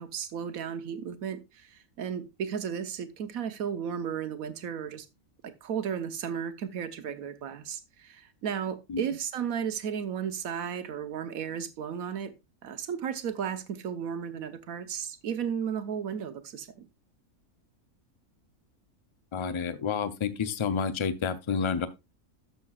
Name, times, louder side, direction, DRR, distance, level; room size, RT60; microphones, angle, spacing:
voice 1, 0.0-5.1 5.4-12.3 12.6-16.9, right 8 dB, 85° right, 1.3 m, -34 dB
voice 2, 19.3-21.9, left 6 dB, 40° left, 0.4 m, -29 dB
12.0 x 6.8 x 2.3 m
omnidirectional pair, 1.5 m